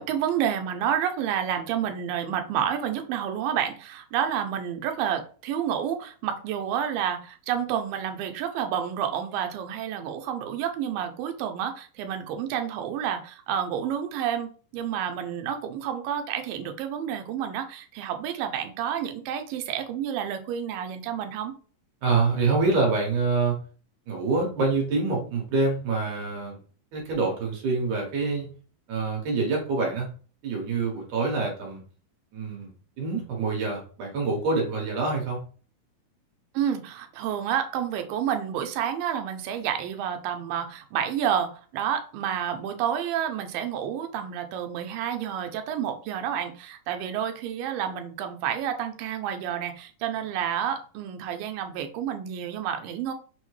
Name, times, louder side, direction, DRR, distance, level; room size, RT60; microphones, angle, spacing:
voice 1, 0.0-21.5 36.5-53.1, right 9 dB, 90° right, 6 dB, 2.3 m, -29 dB
voice 2, 22.0-23.6 24.1-26.6 26.9-28.5 28.9-30.1 30.4-31.8 32.3-35.4, right 3 dB, 70° right, -1 dB, 2.4 m, -26 dB
6.1 x 2.1 x 3.1 m, 0.40 s
omnidirectional pair, 3.9 m